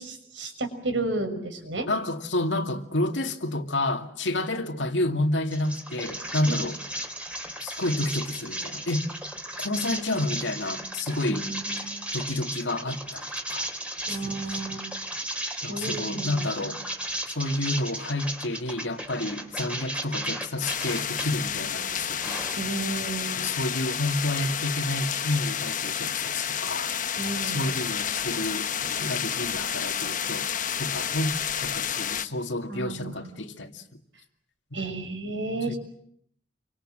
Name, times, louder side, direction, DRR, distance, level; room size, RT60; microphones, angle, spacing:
voice 1, 0.0-1.9 6.5-6.6 11.3-11.9 14.1-14.8 15.7-16.5 22.6-23.4 27.1-27.6 32.7-33.3 34.7-35.8, right 2 dB, 80° right, 6.2 m, -32 dB
voice 2, 1.9-6.8 7.6-9.1 9.6-11.4 12.1-13.7 14.1-14.6 15.6-16.8 17.3-22.4 23.4-26.9 27.4-30.5 30.8-33.8 34.7-34.8 35.7-35.8, left 1 dB, 80° left, 2.3 m, -30 dB
sound 1, 5.5-21.3 21.7-23.0, right 1 dB, 5° right, 3.4 m, -35 dB
sound 2, 20.6-32.3, left 8 dB, 45° left, 1.1 m, -30 dB
29.5 x 24.5 x 7.6 m
head